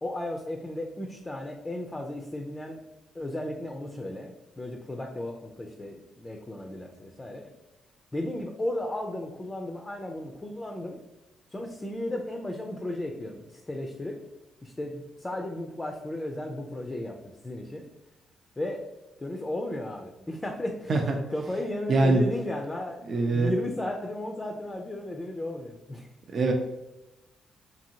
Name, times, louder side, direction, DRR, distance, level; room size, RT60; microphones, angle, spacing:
voice 1, 0.0-2.8 3.1-7.5 8.1-11.0 11.5-14.2 14.6-17.2 17.4-17.8 18.6-18.8 19.2-21.0 21.3-26.1, left 1 dB, 20° left, 2 dB, 0.4 m, -34 dB
voice 2, 21.9-22.2 23.1-23.5 26.3-26.5, right 3 dB, 55° right, 2 dB, 0.4 m, -23 dB
2.7 x 2.6 x 2.7 m, 0.98 s
supercardioid pair, 65°, 0 cm